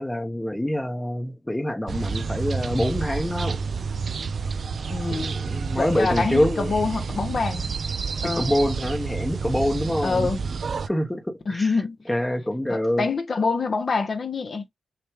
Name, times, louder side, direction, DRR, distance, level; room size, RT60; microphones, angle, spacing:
voice 1, 0.0-3.6 5.1-6.7 8.2-10.3 10.9-11.8 12.1-13.1, left 1 dB, 10° left, 0.9 m, -26 dB
sound 1, 1.9-10.9, right 5 dB, 55° right, 0.5 m, -29 dB
voice 2, 4.9-5.3 5.7-7.7 8.2-8.5 10.0-10.4 11.5-12.0 12.7-14.6, left 4 dB, 50° left, 0.9 m, -25 dB
5.9 x 2.3 x 3.5 m
cardioid pair, 80°, 0 cm